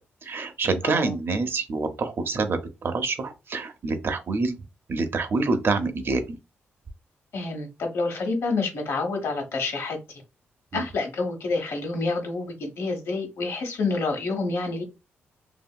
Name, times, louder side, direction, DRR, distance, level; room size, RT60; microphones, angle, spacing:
voice 1, 0.2-4.6 4.9-6.4 10.7-10.8, right 3 dB, 55° right, 0.7 m, -26 dB
voice 2, 0.8-1.1 7.3-10.2 10.7-14.8, left 3 dB, 70° left, 1.1 m, -28 dB
2.8 x 2.7 x 2.2 m
cardioid pair, 60°, 5 cm